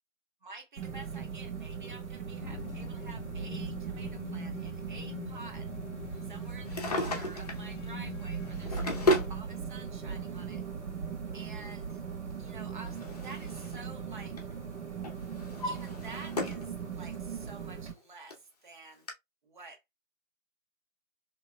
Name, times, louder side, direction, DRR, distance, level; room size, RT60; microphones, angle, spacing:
voice 1, 0.4-5.7 6.2-8.7 9.3-10.6 11.3-12.0 12.4-14.4 15.6-19.1 19.4-19.8, right 3 dB, 40° right, 0.8 m, -49 dB
sound 1, 0.8-17.9, right 6 dB, 60° right, 1.5 m, -39 dB
sound 2, 2.4-9.4, left 11 dB, 65° left, 0.5 m, -45 dB
Drawer open or close, 6.5-7.7 8.4-9.4 10.4-10.5 12.3-13.9 14.1-14.5 15.0-16.7 17.1-17.2 18.0-18.1 18.3-18.4 19.1-19.2, left 1 dB, 30° left, 0.7 m, -33 dB
3.5 x 3.0 x 2.2 m
hypercardioid pair, 160°, 39 cm